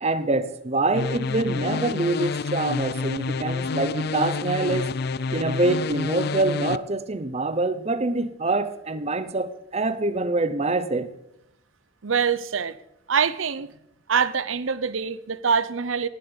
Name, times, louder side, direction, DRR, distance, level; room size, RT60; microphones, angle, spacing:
voice 1, 0.0-4.9 5.3-11.1, right 2 dB, 35° right, 0.9 m, -25 dB
sound 1, 0.9-6.8, left 4 dB, 55° left, 0.5 m, -28 dB
voice 2, 12.0-12.8 13.1-13.7 14.1-16.1, right 6 dB, 90° right, 0.8 m, -24 dB
18.5 x 7.5 x 7.1 m
head